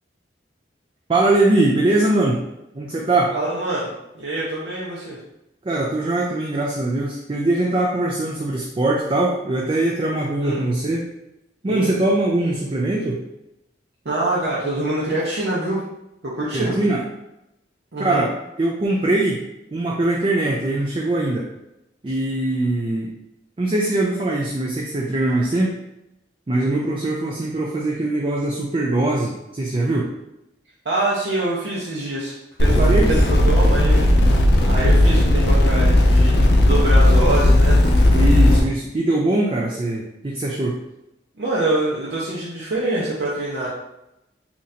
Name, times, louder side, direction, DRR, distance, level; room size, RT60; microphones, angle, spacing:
voice 1, 1.1-2.4 2.7-3.3 5.6-11.1 11.6-13.2 16.5-17.0 18.0-18.3 18.6-19.4 19.7-21.5 22.0-23.1 23.6-25.7 26.5-30.1 32.7-33.1 38.1-40.8, right 2 dB, 30° right, -2 dB, 0.4 m, -21 dB
voice 2, 3.3-5.2 10.4-10.6 11.7-11.9 14.0-15.8 16.2-16.8 17.9-18.2 30.8-32.3 32.6-36.4 36.6-37.9 41.4-43.7, right 2 dB, 70° right, -6 dB, 0.7 m, -25 dB
sound 1, 32.6-38.6, left 1 dB, 60° left, 0.6 m, -15 dB
2.9 x 2.5 x 4.1 m, 0.88 s
head